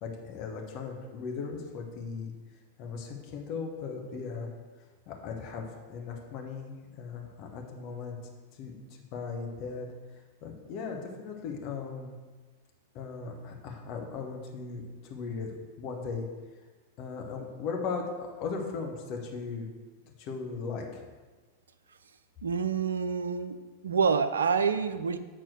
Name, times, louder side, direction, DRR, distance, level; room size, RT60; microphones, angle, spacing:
voice 1, 0.0-2.3 2.8-4.5 5.1-8.2 8.5-8.8 9.1-9.9 10.4-12.1 12.9-16.3 17.0-19.7 20.2-21.0, left 5 dB, 40° left, 2 dB, 1.6 m, -37 dB
voice 2, 22.4-23.6 23.8-25.2, right 6 dB, 70° right, 12 dB, 0.5 m, -27 dB
9.0 x 4.2 x 6.4 m, 1.3 s
figure-of-eight pair, 90°, 0 cm